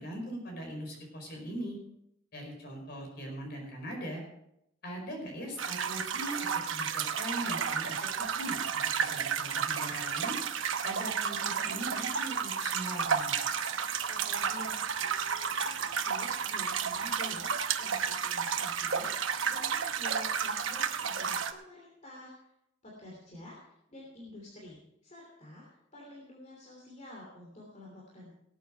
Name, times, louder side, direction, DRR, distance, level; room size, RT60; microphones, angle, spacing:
voice 1, 0.0-1.8 2.3-4.2 4.8-10.3 10.8-13.4, right 1 dB, 50° left, 2 dB, 5.0 m, -41 dB
sound 1, 5.6-21.5, right 7 dB, 75° right, 1.0 m, -32 dB
voice 2, 14.0-22.3 22.8-28.3, left 1 dB, 35° left, -3 dB, 3.1 m, -49 dB
18.5 x 9.1 x 4.6 m, 0.78 s
head